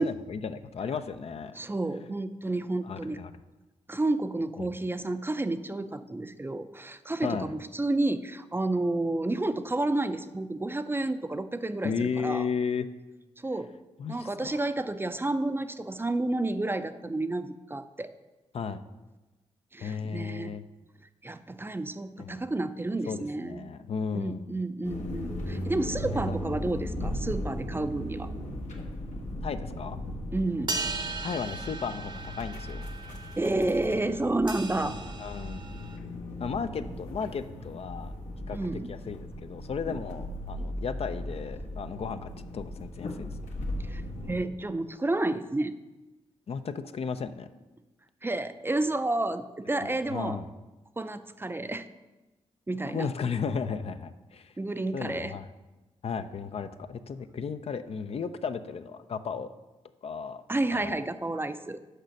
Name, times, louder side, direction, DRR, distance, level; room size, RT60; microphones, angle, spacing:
voice 1, 0.0-1.6 2.8-3.4 4.6-4.7 7.2-7.5 11.8-12.9 14.0-14.6 18.5-18.8 19.8-20.6 22.2-22.4 23.1-24.5 26.0-26.4 29.4-30.0 31.2-32.9 35.2-35.6 36.4-38.1 38.5-38.6 38.9-43.3 46.5-47.5 49.8-50.5 52.8-54.5 54.9-55.5 56.0-59.5 60.0-60.4 60.7-61.0, left 6 dB, 55° left, 10 dB, 0.5 m, -34 dB
voice 2, 1.6-3.2 3.9-12.5 13.4-13.7 14.1-18.1 19.7-20.5 21.2-23.7 24.1-28.3 30.3-30.8 33.4-35.0 38.5-39.0 43.8-44.0 44.3-45.7 48.2-50.4 51.0-51.9 52.7-53.1 54.6-55.4 60.5-61.8, right 2 dB, 20° right, 10 dB, 0.5 m, -30 dB
sound 1, 24.8-44.4, left 1 dB, 80° left, 1.2 m, -37 dB
sound 2, 30.7-36.0, right 3 dB, 40° right, 0.8 m, -38 dB
6.5 x 5.1 x 6.4 m, 1.1 s
cardioid pair, 60°, 12 cm